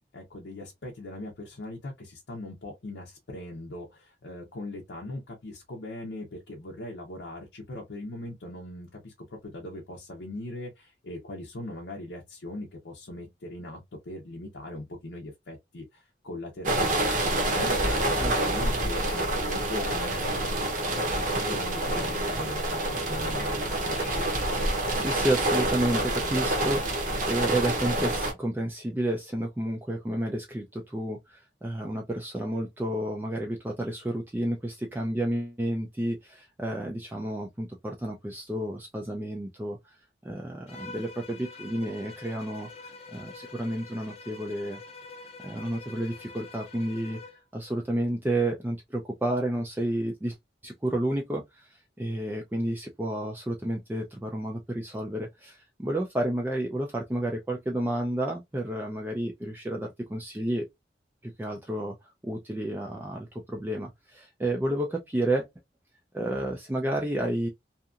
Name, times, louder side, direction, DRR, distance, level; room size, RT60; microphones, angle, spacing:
voice 1, 0.1-24.3, left 1 dB, 85° left, 0.7 m, -40 dB
sound 1, 16.6-28.3, right 1 dB, 45° right, 0.8 m, -27 dB
voice 2, 24.7-39.9 40.2-44.8 45.4-47.2 47.5-50.4 50.6-60.7 61.2-62.0 62.2-65.5 66.1-67.5, right 1 dB, 10° right, 0.3 m, -31 dB
Bowed string instrument, 40.7-47.4, left 4 dB, 35° left, 0.6 m, -45 dB
2.8 x 2.5 x 2.4 m
head